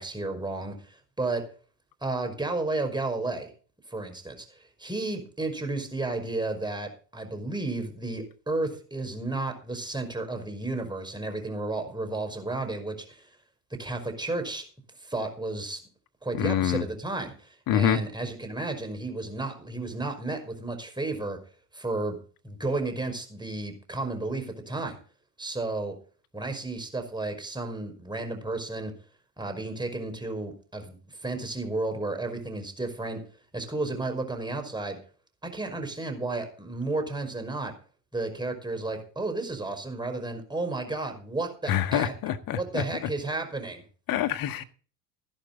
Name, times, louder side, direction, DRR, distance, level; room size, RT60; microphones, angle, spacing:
voice 1, 0.0-1.4 2.0-3.5 3.9-4.5 4.8-13.3 13.8-14.6 15.0-15.8 16.2-21.4 21.7-22.2 22.4-25.0 25.4-25.9 26.3-28.9 29.4-33.2 33.5-35.0 35.4-37.7 38.1-42.1 42.5-43.8, right 2 dB, 10° right, 5 dB, 5.2 m, -32 dB
voice 2, 16.3-16.8 17.7-18.0 41.7-42.8 44.1-44.6, left 10 dB, 45° left, 9 dB, 1.6 m, -26 dB
14.5 x 12.0 x 4.0 m, 0.39 s
figure-of-eight pair, 65°, 49 cm